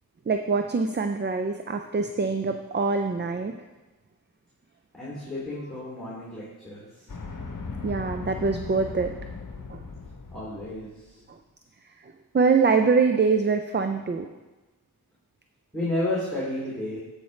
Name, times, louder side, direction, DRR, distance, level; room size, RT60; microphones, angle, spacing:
voice 1, 0.3-3.5 7.8-9.1 9.7-9.8 11.3-11.4 12.3-14.3, right 4 dB, 30° right, 6 dB, 0.4 m, -24 dB
voice 2, 4.9-6.9 10.3-11.1 15.7-17.0, left 1 dB, ahead, -8 dB, 2.8 m, -31 dB
sound 1, 7.1-11.0, left 4 dB, 55° left, 0.9 m, -38 dB
14.0 x 5.1 x 3.2 m, 1.2 s
wide cardioid pair, 50°, 38 cm